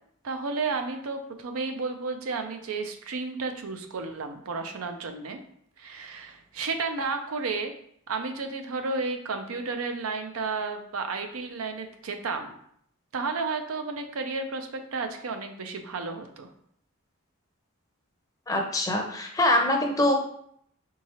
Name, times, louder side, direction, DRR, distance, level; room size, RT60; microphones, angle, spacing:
voice 1, 0.2-5.4 5.8-7.7 8.1-12.5 13.1-16.5, right 4 dB, 85° right, 6 dB, 0.6 m, -32 dB
voice 2, 18.5-20.1, left 1 dB, 15° left, 1 dB, 0.5 m, -24 dB
4.6 x 3.6 x 2.9 m, 0.67 s
head